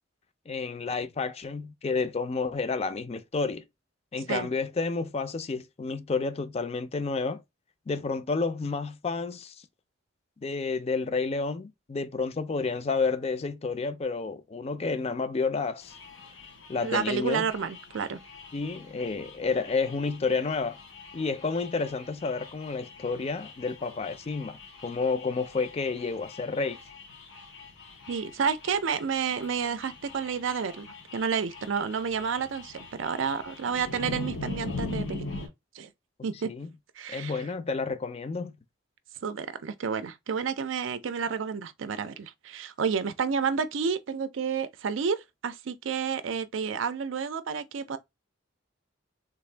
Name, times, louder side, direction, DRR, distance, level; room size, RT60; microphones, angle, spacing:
voice 1, 0.5-3.6 4.1-7.4 7.9-9.6 10.4-15.9 16.7-17.5 18.5-20.8 21.1-26.8 36.4-36.7 37.1-38.5, left 4 dB, 30° left, 0.4 m, -30 dB
sound 1, 15.8-35.5, left 3 dB, 90° left, 1.7 m, -42 dB
voice 2, 16.8-18.2 28.1-35.3 35.7-35.9 36.2-36.5 37.0-37.4 39.2-48.0, right 6 dB, 75° right, 0.5 m, -30 dB
3.5 x 2.5 x 3.2 m
head